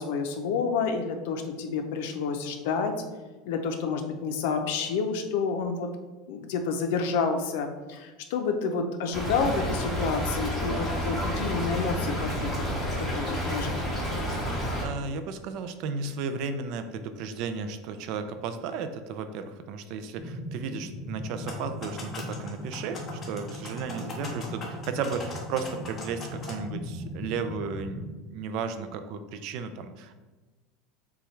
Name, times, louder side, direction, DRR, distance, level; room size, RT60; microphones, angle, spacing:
voice 1, 0.0-2.9 3.5-5.9 6.3-14.0, left 5 dB, 75° left, 5 dB, 0.6 m, -29 dB
Stream / Trickle dribble, 9.1-14.8, equal, 5° left, 1.3 m, -30 dB
voice 2, 14.7-30.1, right 5 dB, 55° right, 9 dB, 0.4 m, -34 dB
sound 1, 20.2-28.1, left 1 dB, 25° right, 0.9 m, -39 dB
sound 2, 21.3-26.5, left 2 dB, 20° left, 1.0 m, -41 dB
6.8 x 2.3 x 3.2 m, 1.2 s
supercardioid pair, 150°, 0 cm